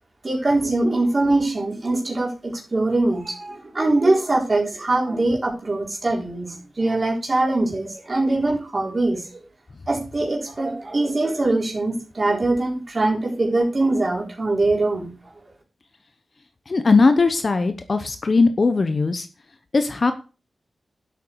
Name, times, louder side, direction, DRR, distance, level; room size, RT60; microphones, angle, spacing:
voice 1, 0.2-9.4 9.9-15.1, right 2 dB, 30° right, -2 dB, 4.3 m, -22 dB
voice 2, 16.7-19.3 19.7-20.1, left 3 dB, 40° left, 9 dB, 0.9 m, -19 dB
11.0 x 8.1 x 4.7 m, 0.34 s
wide cardioid pair, 155°, 0 cm